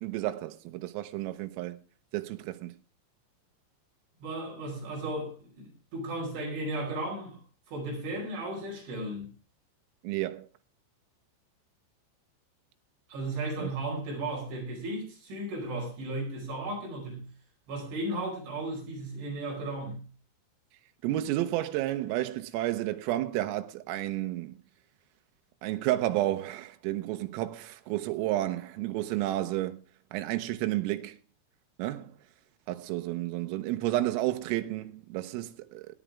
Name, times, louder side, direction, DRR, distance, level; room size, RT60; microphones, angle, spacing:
voice 1, 0.0-1.8 2.1-2.7 10.0-10.5 13.6-13.7 21.0-24.6 25.6-29.8 30.1-31.2 31.8-32.1 32.7-36.0, right 15 dB, 90° right, 3.6 m, -31 dB
voice 2, 4.2-7.4 7.7-9.3 13.1-17.2 17.7-20.0, right 1 dB, 65° right, 7.2 m, -35 dB
18.0 x 11.0 x 3.5 m
omnidirectional pair, 5.9 m